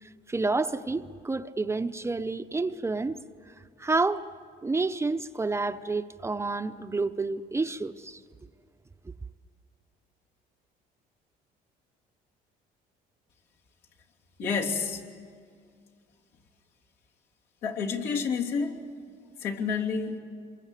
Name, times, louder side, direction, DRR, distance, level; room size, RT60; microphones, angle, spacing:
voice 1, 0.0-3.2 3.5-4.2 4.6-8.2, right 3 dB, 15° right, 0.7 m, -29 dB
voice 2, 14.4-15.0 17.6-18.8 19.4-20.2, left 5 dB, 80° left, 3.2 m, -29 dB
26.5 x 23.5 x 8.3 m
cardioid pair, 110°, 17 cm